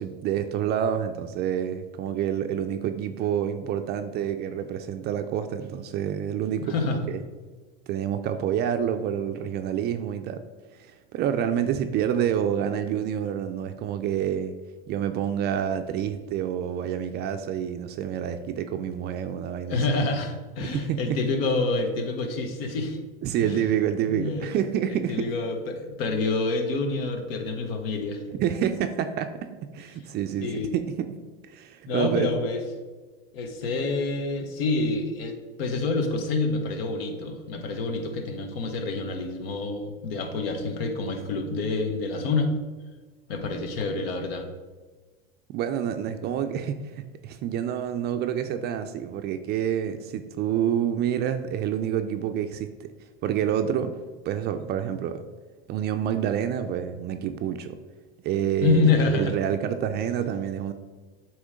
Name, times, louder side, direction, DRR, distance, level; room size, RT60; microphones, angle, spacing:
voice 1, 0.0-7.2 7.9-10.4 10.8-14.5 14.9-19.8 20.6-21.2 23.2-25.3 28.3-29.5 29.7-31.1 31.4-32.3 45.5-52.9 53.2-55.3 55.7-57.8 58.2-60.7, right 9 dB, 35° right, 8 dB, 0.4 m, -28 dB
voice 2, 6.6-7.1 19.7-23.0 23.4-23.6 24.0-24.5 24.9-28.2 30.4-30.8 31.9-32.6 33.3-42.5 43.3-44.5 58.6-59.4, left 3 dB, 75° left, 5 dB, 1.2 m, -27 dB
8.0 x 3.1 x 5.0 m, 1.3 s
supercardioid pair, 125°, 30 cm